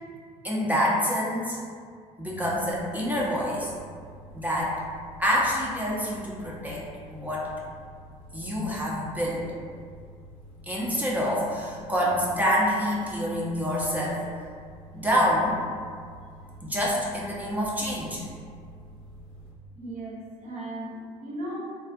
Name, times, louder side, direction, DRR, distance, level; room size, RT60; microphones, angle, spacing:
voice 1, 0.4-1.6 2.2-3.7 4.3-4.7 5.2-7.5 8.3-9.4 10.6-14.2 14.9-15.6 16.6-18.3, equal, 10° right, -5 dB, 0.6 m, -27 dB
sound 1, 2.3-19.5, right 1 dB, 85° left, 0.4 m, -48 dB
voice 2, 19.7-21.6, right 1 dB, 45° right, -5 dB, 0.8 m, -37 dB
2.3 x 2.0 x 2.6 m, 2.1 s
hypercardioid pair, 60°, 18 cm